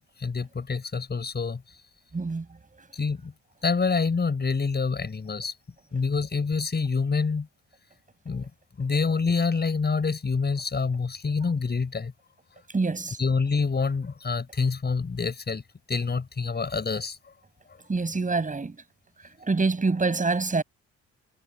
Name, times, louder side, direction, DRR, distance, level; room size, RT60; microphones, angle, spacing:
voice 1, 0.2-1.6 2.9-3.3 3.6-5.5 5.9-7.5 8.2-8.5 8.8-12.1 13.2-15.6 15.9-17.3, left 4 dB, 35° left, 6.4 m, -26 dB
voice 2, 2.1-2.5 12.7-13.2 17.9-18.8 19.4-20.6, right 3 dB, 25° right, 7.9 m, -25 dB
cardioid pair, 90°, 30 cm